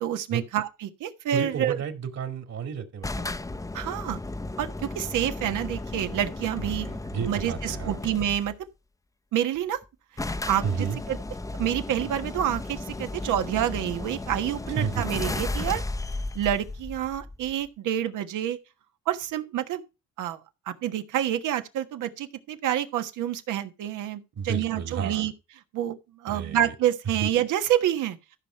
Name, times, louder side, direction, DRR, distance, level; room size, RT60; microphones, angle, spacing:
voice 1, 0.0-1.8 3.7-4.2 4.6-6.9 7.3-8.5 9.3-9.8 10.5-11.2 11.6-15.8 16.3-18.6 19.1-19.8 20.2-20.4 20.7-25.3 25.7-28.2, right 11 dB, 85° right, 1.4 m, -28 dB
voice 2, 1.3-3.3 6.6-8.0 10.6-11.0 14.8-15.0 24.4-25.3 26.3-26.7 27.1-27.3, right 7 dB, 55° right, 2.5 m, -31 dB
sound 1, 3.0-8.5 9.5-9.6 9.8-9.9 10.2-17.7, left 2 dB, 10° left, 0.6 m, -34 dB
14.0 x 5.9 x 4.5 m
cardioid pair, 90°, 30 cm